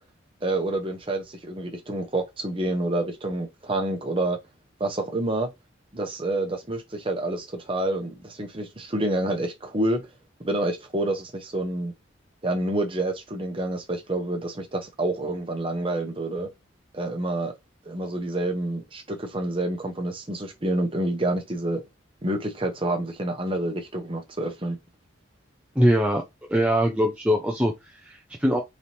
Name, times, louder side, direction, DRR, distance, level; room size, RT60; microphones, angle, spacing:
voice 1, 0.4-4.4 4.8-5.5 5.9-10.0 10.4-11.9 12.4-16.5 16.9-17.5 17.8-21.8 22.2-24.8, right 1 dB, 25° right, 0.9 m, -28 dB
voice 2, 25.8-26.2 26.5-28.6, equal, 5° right, 0.5 m, -22 dB
4.1 x 3.5 x 2.9 m
head